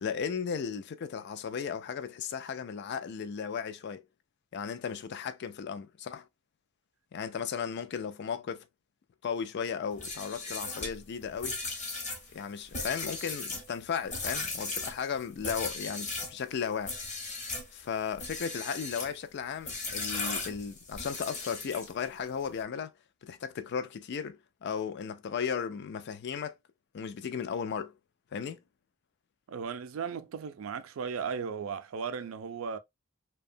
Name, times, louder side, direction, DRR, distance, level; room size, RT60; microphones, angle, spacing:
voice 1, 0.0-4.0 4.5-6.3 7.1-8.7 9.2-11.6 12.3-16.9 17.7-22.9 23.2-26.6 26.9-27.9 28.3-28.6, left 6 dB, 55° left, 0.4 m, -35 dB
sound 1, 9.9-16.4 16.8-17.7 18.1-19.2 19.7-22.1, left 3 dB, 35° left, 0.9 m, -37 dB
voice 2, 29.5-32.8, right 6 dB, 70° right, 0.4 m, -36 dB
2.7 x 2.2 x 2.5 m
head